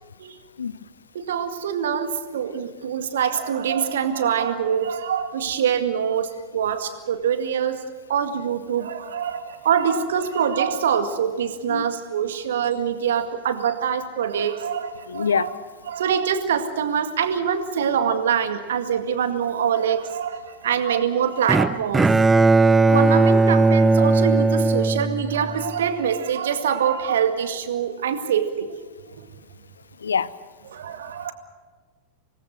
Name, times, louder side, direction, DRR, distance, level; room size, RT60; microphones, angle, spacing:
voice 1, 1.1-7.8 8.1-15.5 15.9-22.1 22.9-28.7 30.7-31.3, right 8 dB, 60° right, 8 dB, 2.0 m, -24 dB
voice 2, 15.1-15.5 30.0-30.3, left 6 dB, 70° left, 18 dB, 0.7 m, -24 dB
Bowed string instrument, 21.5-25.7, right 3 dB, 10° right, 0.6 m, -17 dB
26.0 x 19.5 x 6.5 m, 1.3 s
figure-of-eight pair, 90°, 0 cm